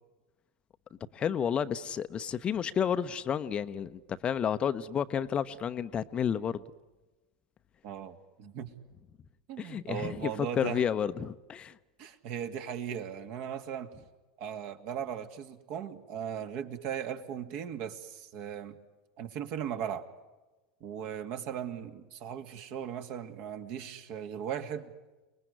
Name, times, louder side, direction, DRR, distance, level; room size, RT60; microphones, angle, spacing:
voice 1, 1.1-6.6 9.6-11.7, left 8 dB, 25° left, 0.9 m, -31 dB
voice 2, 7.8-8.7 9.5-10.8 12.0-13.9 14.4-18.8 19.2-20.1 20.8-24.9, right 8 dB, 50° right, 2.3 m, -38 dB
30.0 x 20.5 x 9.7 m
figure-of-eight pair, 85°, 4 cm